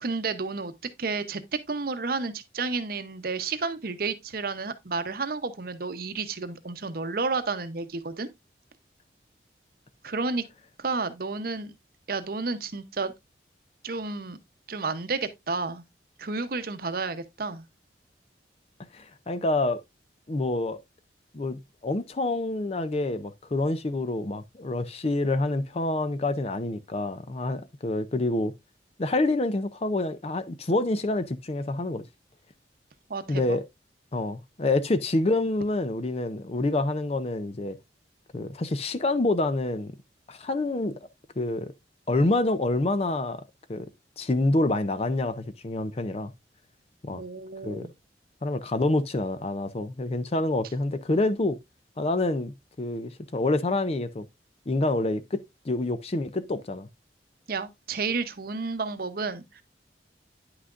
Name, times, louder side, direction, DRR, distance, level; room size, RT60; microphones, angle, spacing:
voice 1, 0.0-0.7 1.0-8.3 10.0-10.4 10.8-11.7 12.1-13.1 13.8-14.4 14.7-15.8 16.2-17.6 33.1-33.6 47.1-47.9 57.5-59.6, right 4 dB, 55° right, 0.8 m, -31 dB
voice 2, 18.9-19.8 20.3-20.8 21.3-28.5 29.0-32.0 33.3-33.6 34.1-37.8 38.3-39.9 40.3-41.0 41.4-41.7 42.1-43.4 43.7-43.9 44.2-46.3 47.0-47.2 47.6-47.9 48.4-51.6 52.0-54.3 54.7-56.9, left 2 dB, 35° left, 0.5 m, -27 dB
9.7 x 5.9 x 2.5 m
head